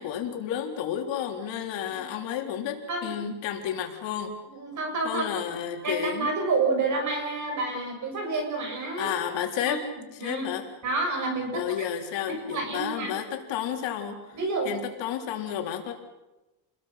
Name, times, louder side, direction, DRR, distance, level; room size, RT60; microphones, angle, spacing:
voice 1, 0.0-4.4 5.0-6.3 9.0-9.8 10.2-10.6 11.5-14.4 14.6-15.9, left 9 dB, 80° left, 3 dB, 3.9 m, -31 dB
voice 2, 4.5-5.3 5.8-9.1 9.6-9.8 10.2-10.5 10.8-11.6 12.3-13.1 14.4-14.7, right 3 dB, 40° right, 3 dB, 7.0 m, -29 dB
29.5 x 21.5 x 5.9 m, 1.0 s
cardioid pair, 165°, 44 cm